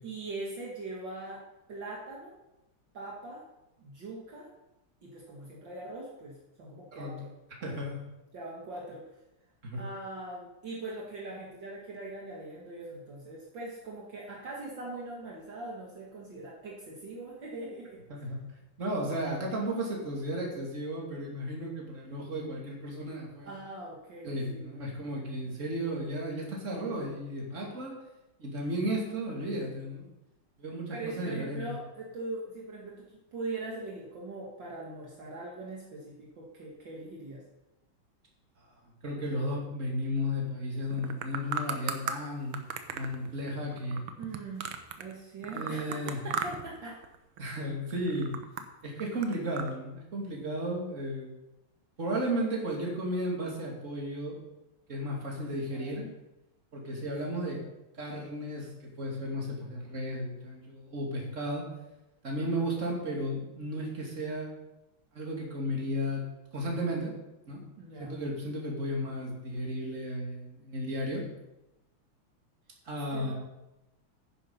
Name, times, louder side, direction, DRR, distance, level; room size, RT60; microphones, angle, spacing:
voice 1, 0.0-1.4 1.7-2.3 2.9-3.4 3.8-4.5 5.0-7.3 7.6-7.8 8.3-9.0 9.8-18.2 23.4-24.9 30.9-37.4 44.2-44.7 45.0-47.0 55.4-56.1 67.8-68.2 73.1-73.3, right 2 dB, 60° right, -3 dB, 2.4 m, -41 dB
voice 2, 7.6-8.0 9.6-9.8 18.1-18.4 18.8-23.5 24.2-27.9 28.4-30.1 30.6-31.8 39.0-42.6 42.9-44.0 45.5-46.2 47.4-48.3 48.8-51.3 52.0-54.4 54.9-56.0 56.7-57.6 57.9-61.6 62.2-64.5 65.1-66.2 66.5-67.1 67.5-67.6 68.0-71.2 72.8-73.3, equal, 35° right, -1 dB, 3.0 m, -34 dB
sound 1, 40.9-42.2 42.5-45.1 45.4-46.8 47.0-47.5 47.9-49.7, right 7 dB, 85° right, 1.9 m, -36 dB
10.0 x 10.0 x 5.7 m, 0.96 s
omnidirectional pair, 2.4 m